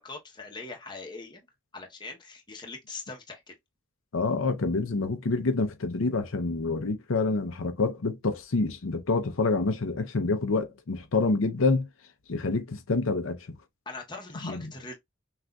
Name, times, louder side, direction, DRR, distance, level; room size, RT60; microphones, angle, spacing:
voice 1, 0.0-1.4 1.7-3.5 13.9-14.9, left 3 dB, 20° left, 0.9 m, -41 dB
voice 2, 4.1-11.9 12.3-13.5 14.4-14.6, left 3 dB, 70° left, 0.6 m, -27 dB
6.0 x 2.5 x 2.3 m
head